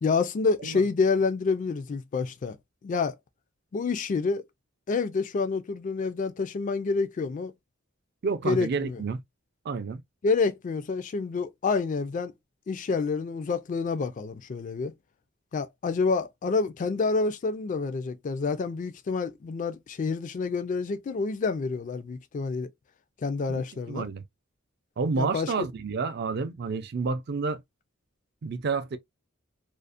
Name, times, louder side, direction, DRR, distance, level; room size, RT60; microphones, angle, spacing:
voice 1, 0.0-2.6 2.8-3.2 3.7-4.4 4.9-7.5 8.4-9.0 10.2-12.3 12.7-14.9 15.5-22.7 23.2-24.1 25.1-25.5, left 4 dB, 40° left, 0.3 m, -28 dB
voice 2, 8.2-9.2 9.6-10.0 23.9-24.2 25.0-27.6 28.4-29.0, right 4 dB, 55° right, 0.4 m, -29 dB
2.5 x 2.0 x 2.4 m
head